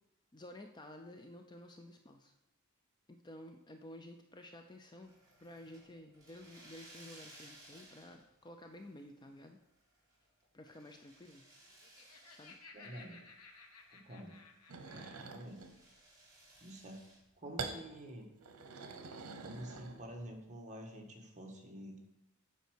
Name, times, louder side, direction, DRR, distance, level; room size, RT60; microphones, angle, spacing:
voice 1, 0.3-2.3 3.1-5.1 5.4-9.6 10.5-11.5 12.3-12.6, left 1 dB, 20° left, 5 dB, 0.4 m, -52 dB
sound 1, 5.0-8.4 8.7-9.3 9.8-12.6 12.9-13.0 13.5-14.9 15.4-17.2, right 1 dB, 15° right, 2.5 m, -60 dB
Laughter, 11.6-15.4, left 4 dB, 85° left, 1.1 m, -57 dB
voice 2, 12.7-13.2 13.9-14.4 14.8-15.6 16.6-17.0 17.4-18.3 19.4-22.0, equal, 35° right, 0 dB, 1.4 m, -48 dB
sound 2, 14.7-15.7 17.6-17.8 18.4-20.3, right 4 dB, 85° right, 0.8 m, -45 dB
8.1 x 4.5 x 6.3 m, 0.90 s
head